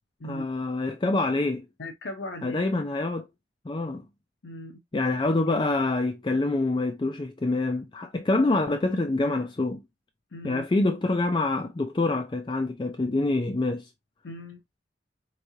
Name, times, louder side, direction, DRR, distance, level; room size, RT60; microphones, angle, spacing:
voice 1, 0.2-1.6 2.4-3.3 3.7-4.0 4.9-9.8 10.4-13.9, left 2 dB, 25° left, 0.4 m, -26 dB
voice 2, 1.8-2.6 4.4-4.8 10.3-10.6 14.2-14.6, left 1 dB, 70° left, 0.7 m, -38 dB
4.5 x 3.2 x 2.7 m
head